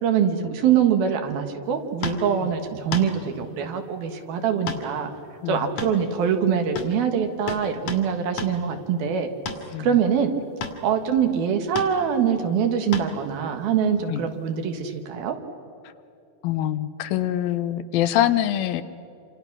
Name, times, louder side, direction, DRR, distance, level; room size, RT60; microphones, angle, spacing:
voice 1, 0.0-5.1 5.5-9.3 9.8-10.3 10.8-15.4, right 7 dB, 75° right, 6 dB, 3.4 m, -23 dB
sound 1, 2.0-2.3 2.9-3.1 4.7-4.9 5.1-5.2 5.8-6.4 6.7-7.0 7.5-8.1 8.4-8.6 9.5-9.6 10.6-10.8 11.8-11.9 12.9-13.2 14.8-14.9, left 4 dB, 55° left, 3.0 m, -32 dB
voice 2, 5.4-5.7 9.7-10.0 14.1-14.3 15.8-15.9 16.4-18.8, left 12 dB, 75° left, 12 dB, 2.6 m, -24 dB
27.5 x 26.5 x 6.1 m, 2.6 s
omnidirectional pair, 4.3 m